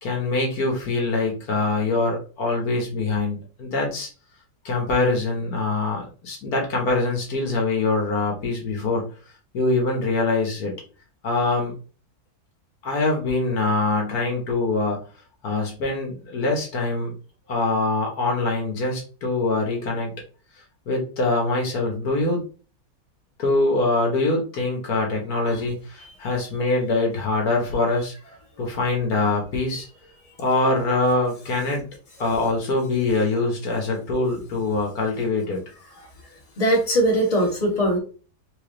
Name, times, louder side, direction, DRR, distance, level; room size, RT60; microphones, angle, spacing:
voice 1, 0.0-4.1 4.7-9.0 9.5-10.7 11.2-11.7 12.8-15.0 15.4-17.1 17.5-20.1 20.9-22.4 23.4-28.1 28.6-29.9 30.4-31.8 32.2-35.6, left 3 dB, 70° left, 0 dB, 1.7 m, -24 dB
voice 2, 36.6-38.0, right 1 dB, 25° left, -1 dB, 1.5 m, -20 dB
3.8 x 3.5 x 3.7 m, 0.38 s
omnidirectional pair, 1.7 m